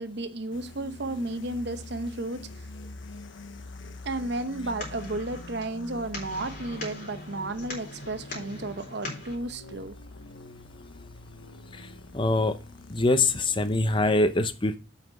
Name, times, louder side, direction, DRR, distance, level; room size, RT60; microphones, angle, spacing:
voice 1, 0.0-2.7 4.0-10.0, right 2 dB, 60° right, 0.8 m, -33 dB
sound 1, 0.5-14.2, left 2 dB, 75° left, 0.9 m, -45 dB
sound 2, 4.3-9.4, left 2 dB, 45° left, 3.9 m, -41 dB
voice 2, 12.1-12.6 12.9-14.8, left 2 dB, 25° left, 0.7 m, -24 dB
7.9 x 5.8 x 5.3 m
head